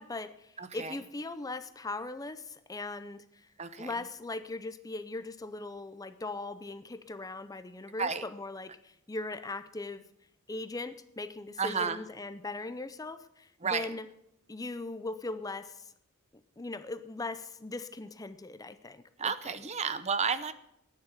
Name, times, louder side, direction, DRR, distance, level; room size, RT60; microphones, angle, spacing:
voice 1, 0.0-3.5 3.8-10.0 10.5-14.1 14.5-15.9 16.6-19.6, left 2 dB, 15° left, 12 dB, 0.6 m, -39 dB
voice 2, 0.6-1.0 3.6-3.9 8.0-8.2 11.6-12.0 13.6-13.9 19.2-20.5, right 5 dB, 30° right, 13 dB, 0.8 m, -32 dB
11.5 x 9.8 x 7.2 m, 0.78 s
head